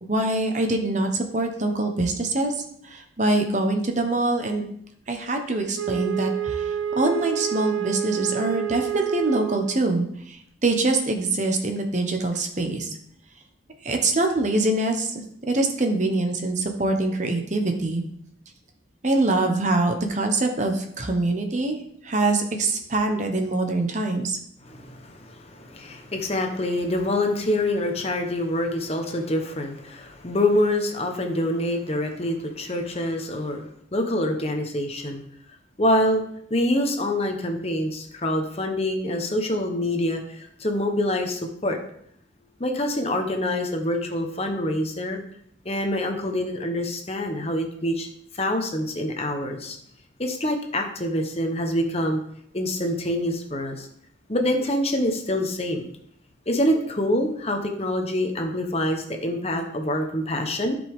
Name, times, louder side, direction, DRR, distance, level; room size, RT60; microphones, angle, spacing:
voice 1, 0.0-2.5 2.8-4.7 5.1-12.9 13.8-15.1 15.5-18.0 19.0-21.8 22.0-24.4, right 2 dB, 40° right, 4 dB, 1.0 m, -24 dB
Wind instrument woodwind instrument, 5.7-9.9, right 10 dB, 90° right, 0.8 m, -28 dB
voice 2, 24.6-35.2 35.8-36.2 36.5-41.8 42.6-45.2 45.6-48.1 48.3-49.8 50.2-52.2 52.5-53.9 54.3-55.9 56.5-60.7, left 1 dB, 30° left, 4 dB, 1.0 m, -26 dB
13.5 x 5.3 x 3.6 m, 0.70 s
head